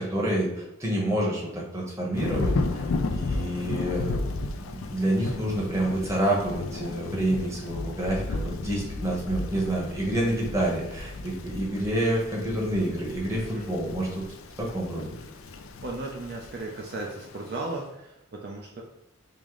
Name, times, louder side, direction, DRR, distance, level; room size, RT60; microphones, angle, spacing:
voice 1, 0.0-2.8 3.1-4.2 4.6-14.2 14.6-15.1, right 1 dB, 15° right, -4 dB, 0.9 m, -28 dB
Thunder / Rain, 2.1-17.7, left 3 dB, 65° left, 0.4 m, -34 dB
voice 2, 13.4-13.7 15.8-18.8, right 2 dB, 45° right, -1 dB, 0.4 m, -36 dB
4.7 x 2.0 x 3.6 m, 0.88 s
head